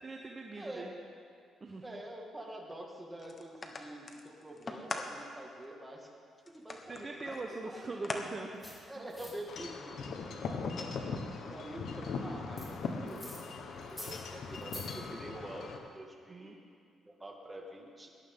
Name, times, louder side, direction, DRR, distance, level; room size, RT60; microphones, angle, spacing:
voice 1, 0.0-0.9 1.6-1.8 6.9-9.1 16.3-16.6, right 3 dB, 30° right, 2 dB, 1.0 m, -42 dB
voice 2, 0.6-0.9 1.8-6.1 6.5-7.1 7.7-8.1 8.9-11.1 11.4-16.6 17.0-18.1, right 1 dB, 15° right, 0 dB, 2.1 m, -47 dB
sound 1, 3.2-5.1 5.6-5.7 6.5-8.2 8.6-8.7 9.7-10.8, left 3 dB, 35° left, 1.3 m, -43 dB
sound 2, 8.6-8.7 9.1-9.3 12.6-12.7 13.1-13.4 13.8-14.1 14.5-14.8, equal, 10° left, 3.9 m, -46 dB
Wind chime / Wind, 9.5-15.8, left 4 dB, 65° left, 1.3 m, -40 dB
18.5 x 11.5 x 3.8 m, 2.3 s
cardioid pair, 90°, 0 cm